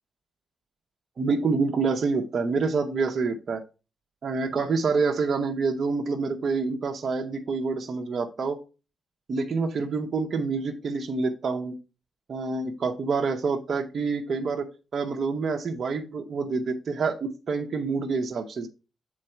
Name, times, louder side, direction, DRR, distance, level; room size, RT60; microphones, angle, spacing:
voice 1, 1.2-3.6 4.2-8.6 9.3-11.7 12.3-14.7 14.9-18.7, right 4 dB, 55° right, 2 dB, 0.8 m, -27 dB
7.5 x 3.9 x 4.4 m, 0.32 s
cardioid pair, 75°, 0 cm